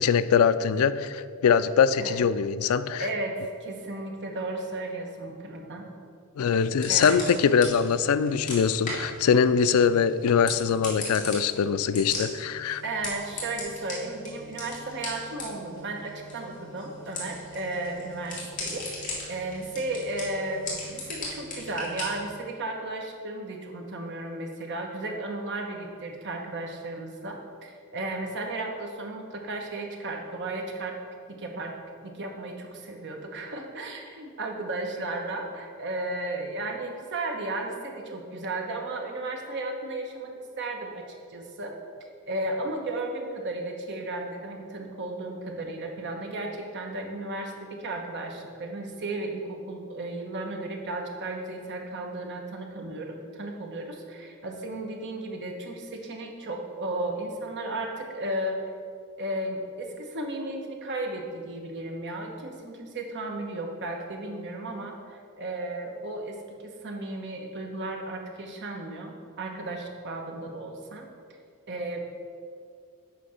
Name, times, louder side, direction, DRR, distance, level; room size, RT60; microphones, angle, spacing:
voice 1, 0.0-3.1 6.4-12.8, left 6 dB, 70° left, 13 dB, 0.3 m, -23 dB
voice 2, 3.0-5.9 6.9-7.1 12.8-30.9 31.3-31.7 32.0-41.0 41.3-41.7 42.3-58.7 59.2-71.1 71.7-72.0, right 2 dB, 55° right, 2 dB, 1.1 m, -34 dB
sound 1, 6.4-22.3, left 2 dB, 40° left, 2.1 m, -39 dB
9.4 x 3.3 x 6.4 m, 2.3 s
head